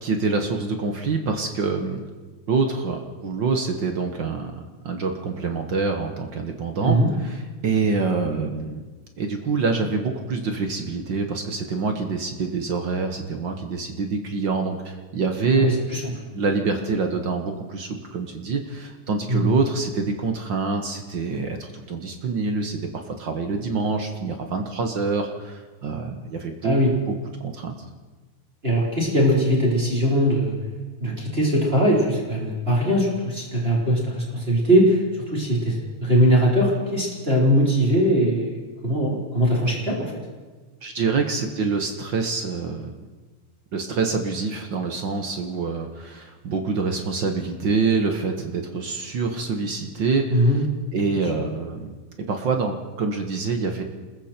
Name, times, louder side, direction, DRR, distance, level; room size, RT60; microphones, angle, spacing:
voice 1, 0.0-2.1 2.5-7.0 7.2-7.3 7.6-8.8 9.2-15.7 16.3-26.8 27.1-27.2 27.4-27.8 40.8-42.9 43.7-50.5 50.9-52.0 52.3-53.8, right 4 dB, 50° right, 4 dB, 1.5 m, -26 dB
voice 2, 15.5-16.0 19.3-19.5 26.6-26.9 28.6-30.6 31.0-40.2 50.3-50.6 51.2-51.4, equal, 20° right, -4 dB, 4.1 m, -21 dB
28.0 x 21.0 x 4.5 m, 1.3 s
omnidirectional pair, 3.6 m